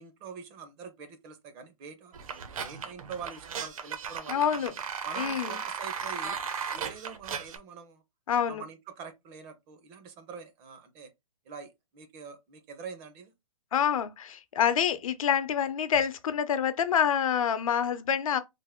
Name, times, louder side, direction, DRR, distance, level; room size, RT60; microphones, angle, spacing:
voice 1, 0.0-2.1 2.6-4.6 5.0-6.4 6.7-8.0 8.5-11.1 11.5-13.3, right 6 dB, 25° right, 0.5 m, -44 dB
sound 1, 2.1-7.6, right 7 dB, 70° right, 0.8 m, -36 dB
voice 2, 4.3-4.7 5.2-5.5 8.3-8.6 13.7-18.4, left 8 dB, 70° left, 0.6 m, -27 dB
3.3 x 2.1 x 3.5 m
hypercardioid pair, 150°, 18 cm